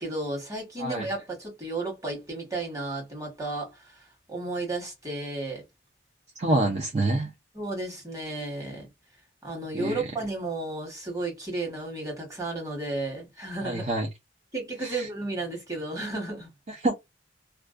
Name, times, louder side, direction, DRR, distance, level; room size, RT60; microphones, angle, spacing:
voice 1, 0.0-4.0 4.3-5.6 6.5-6.6 7.5-8.9 9.4-13.8 14.5-16.5, right 2 dB, 20° right, 1.2 m, -33 dB
voice 2, 6.4-7.3 9.7-10.0 13.6-14.1 14.8-15.1 16.7-16.9, right 2 dB, 40° right, 0.5 m, -26 dB
2.5 x 2.1 x 2.4 m
head